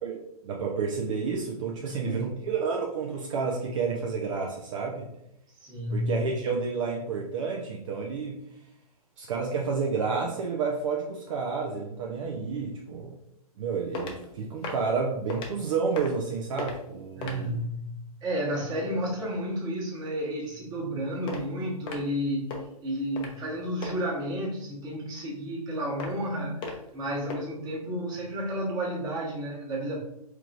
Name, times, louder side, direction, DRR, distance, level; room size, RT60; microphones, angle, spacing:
voice 1, 0.0-5.1 5.9-8.4 9.2-13.2 13.6-17.6, right 5 dB, 55° right, -1 dB, 0.7 m, -30 dB
voice 2, 1.8-2.2 5.6-6.2 17.1-30.0, equal, 20° right, -4 dB, 1.3 m, -32 dB
sound 1, 13.9-14.2 14.6-14.9 15.3-15.5 15.9-16.3 16.6-16.8 17.2-17.5 21.3-21.4 21.9-22.2 22.5-22.6 23.2-23.4 23.8-23.9 26.0-26.3 26.6-26.9 27.3-27.4, left 3 dB, 25° left, 0.7 m, -36 dB
4.7 x 3.1 x 2.5 m, 0.79 s
hypercardioid pair, 120°, 20 cm